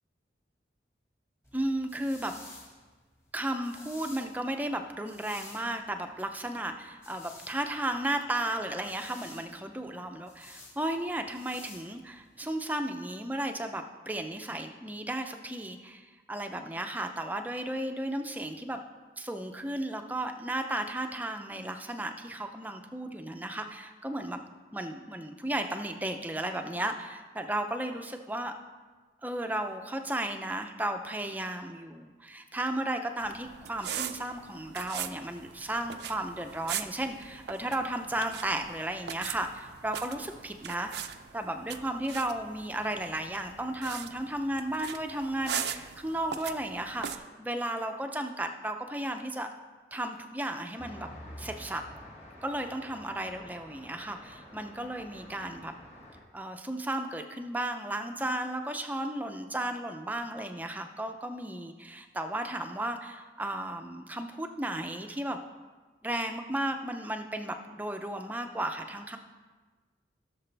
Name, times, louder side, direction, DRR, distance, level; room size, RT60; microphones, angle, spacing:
sound 1, 1.4-12.4, left 2 dB, 15° left, 1.6 m, -52 dB
voice 1, 1.5-2.4 3.3-18.8 19.2-24.4 24.7-28.5 29.2-41.1 41.3-49.5 49.9-51.1 51.4-51.8 52.4-55.7 56.3-65.4 66.0-69.2, right 1 dB, 10° right, 6 dB, 0.5 m, -34 dB
sound 2, 33.2-47.2, right 8 dB, 70° right, 0.5 m, -40 dB
Traffic noise roadway noise, 50.8-56.2, equal, 35° left, 1.8 m, -49 dB
16.0 x 6.7 x 3.4 m, 1.4 s
head